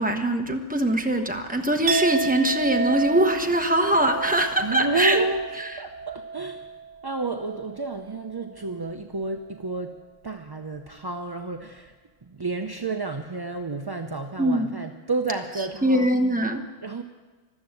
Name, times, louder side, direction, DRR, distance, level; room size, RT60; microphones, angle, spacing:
voice 1, 0.0-5.2 14.4-14.7 15.8-16.6, right 1 dB, 5° right, 4 dB, 1.0 m, -22 dB
Chink clink, 1.9-7.8 8.1-8.5, right 5 dB, 70° right, 1.6 m, -31 dB
voice 2, 4.6-5.5 5.8-6.7 7.0-10.0 10.2-11.9 12.2-16.1 16.8-17.0, right 3 dB, 30° right, 5 dB, 0.4 m, -30 dB
14.5 x 12.5 x 7.9 m, 1.3 s
omnidirectional pair, 1.4 m